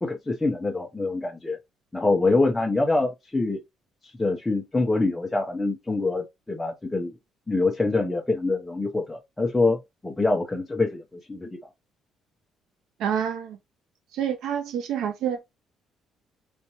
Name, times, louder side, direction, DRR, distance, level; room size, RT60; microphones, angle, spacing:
voice 1, 0.0-1.6 1.9-3.6 4.2-7.1 7.5-11.5, left 3 dB, 10° left, 0.6 m, -25 dB
voice 2, 13.0-13.6 14.1-15.4, right 8 dB, 70° right, 0.4 m, -27 dB
4.1 x 2.3 x 2.9 m
cardioid pair, 170°, 0 cm